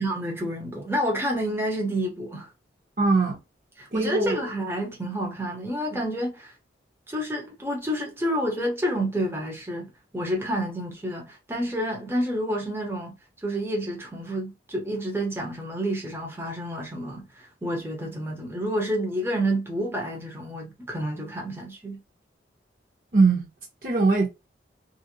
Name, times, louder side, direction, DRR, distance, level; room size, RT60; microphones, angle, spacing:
voice 1, 0.0-2.5 3.8-6.5 7.1-13.1 13.4-22.0, equal, 15° right, 0.6 m, -29 dB
voice 2, 3.0-3.4 3.9-4.4 23.1-23.5 23.8-24.3, right 3 dB, 45° right, 0.8 m, -21 dB
2.5 x 2.0 x 2.7 m
head